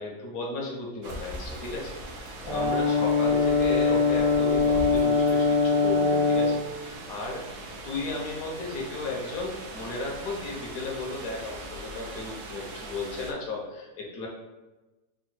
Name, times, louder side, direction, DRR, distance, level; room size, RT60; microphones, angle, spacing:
voice 1, 0.0-7.5 7.8-14.3, left 2 dB, 65° left, -1 dB, 1.2 m, -35 dB
sound 1, 1.0-13.3, right 1 dB, 70° right, 1.0 m, -40 dB
Brass instrument, 2.5-6.6, left 4 dB, 40° left, 0.5 m, -22 dB
3.8 x 2.2 x 4.3 m, 1.1 s
omnidirectional pair, 1.7 m